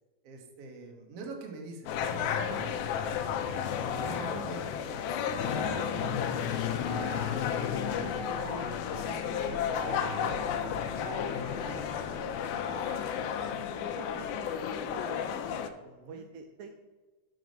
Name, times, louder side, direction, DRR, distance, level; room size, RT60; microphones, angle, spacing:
voice 1, 0.2-3.1 3.4-3.6 4.0-7.4 7.7-13.5 15.8-16.2, right 3 dB, 60° right, 2 dB, 1.7 m, -46 dB
sound 1, 1.9-15.7, left 8 dB, 85° left, 2.4 m, -32 dB
sound 2, 3.9-4.5 5.5-6.0 6.9-7.5 8.2-8.8 9.7-10.4 11.0-12.0 12.7-13.5, equal, ahead, 1.1 m, -42 dB
voice 2, 13.8-15.7 16.1-16.7, right 5 dB, 80° right, 5 dB, 2.1 m, -48 dB
6.3 x 5.8 x 6.6 m, 1.3 s
omnidirectional pair, 4.3 m